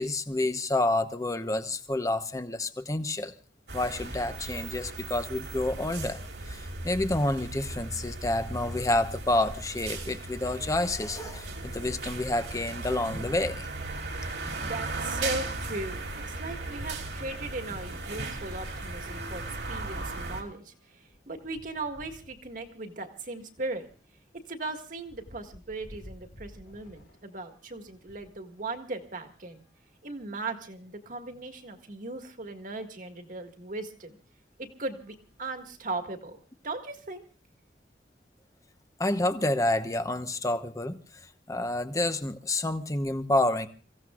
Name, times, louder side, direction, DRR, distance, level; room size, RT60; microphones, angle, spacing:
voice 1, 0.0-3.3 3.7-6.2 6.4-13.7 14.5-14.6 39.0-43.7, left 2 dB, 20° left, 0.9 m, -29 dB
sound 1, 3.7-20.4, right 2 dB, 85° right, 2.7 m, -37 dB
voice 2, 14.5-23.9 24.5-29.6 30.0-34.2 34.6-37.2, right 2 dB, 50° right, 1.8 m, -38 dB
sound 2, 20.3-28.4 29.1-30.5 31.2-31.3 31.5-31.6 33.3-33.4 34.1-34.3 34.7-36.0, equal, 85° left, 2.3 m, -55 dB
29.5 x 16.0 x 2.4 m
head